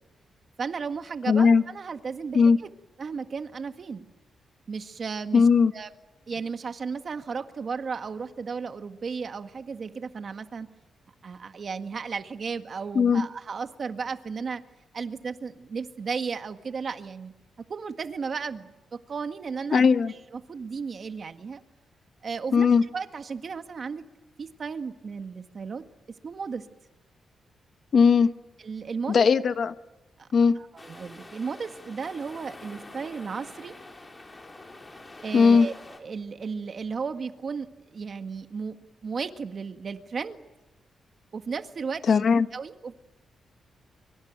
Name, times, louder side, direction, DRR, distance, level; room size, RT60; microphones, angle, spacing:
voice 1, 0.6-2.7 3.0-4.1 4.7-5.4 5.7-5.9 6.3-10.7 11.2-14.6 14.9-19.8 20.3-21.6 22.2-22.7 22.9-24.0 24.4-25.8 26.2-26.7 28.6-29.3 30.2-30.3 30.5-33.7 35.2-38.8 39.0-40.4 41.3-42.0 42.5-42.9, right 5 dB, 45° right, 1.7 m, -34 dB
voice 2, 1.3-1.6 2.3-2.6 5.3-5.7 12.9-13.3 19.7-20.1 22.5-22.8 27.9-28.3 29.1-29.7 30.3-30.6 35.3-35.7 42.1-42.5, left 5 dB, 55° left, 1.3 m, -18 dB
sound 1, 30.8-36.0, left 2 dB, 20° left, 4.1 m, -46 dB
24.0 x 24.0 x 9.2 m
cardioid pair, 110°, 0 cm